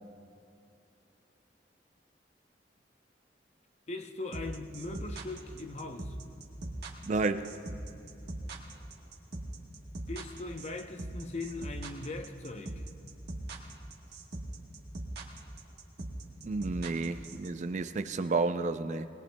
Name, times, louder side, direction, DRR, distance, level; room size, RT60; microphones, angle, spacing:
voice 1, 3.9-6.1 10.1-12.8, left 2 dB, 40° left, 0.7 m, -40 dB
sound 1, 4.3-17.5, right 2 dB, 65° right, 1.4 m, -41 dB
voice 2, 7.0-7.6 16.4-19.1, right 3 dB, 40° right, 0.4 m, -31 dB
20.5 x 20.0 x 2.2 m
head